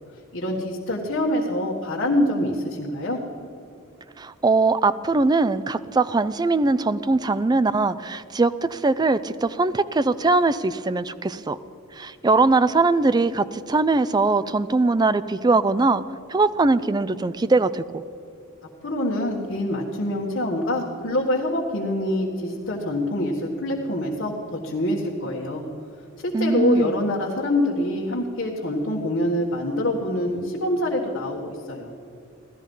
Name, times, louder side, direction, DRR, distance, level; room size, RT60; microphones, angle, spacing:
voice 1, 0.3-3.2 18.8-25.6 26.2-31.9, left 1 dB, 55° left, -4 dB, 1.6 m, -25 dB
voice 2, 4.2-11.6 11.9-16.0 16.3-18.0 26.3-27.0, right 3 dB, 20° right, 14 dB, 0.4 m, -21 dB
16.5 x 13.0 x 5.4 m, 2.7 s
head